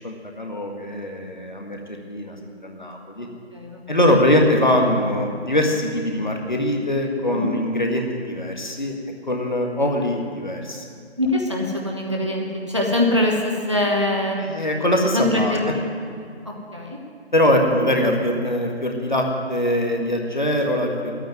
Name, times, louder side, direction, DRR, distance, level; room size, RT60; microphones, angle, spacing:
voice 1, 0.0-2.4 2.6-3.3 3.9-8.9 9.3-10.8 14.5-15.5 17.3-21.1, left 1 dB, 45° left, 1 dB, 1.7 m, -22 dB
voice 2, 3.2-3.9 7.3-7.5 11.2-14.4 15.0-15.8 16.4-17.0, left 1 dB, 25° right, -1 dB, 1.1 m, -23 dB
11.5 x 9.1 x 9.2 m, 2.2 s
figure-of-eight pair, 170°, 33 cm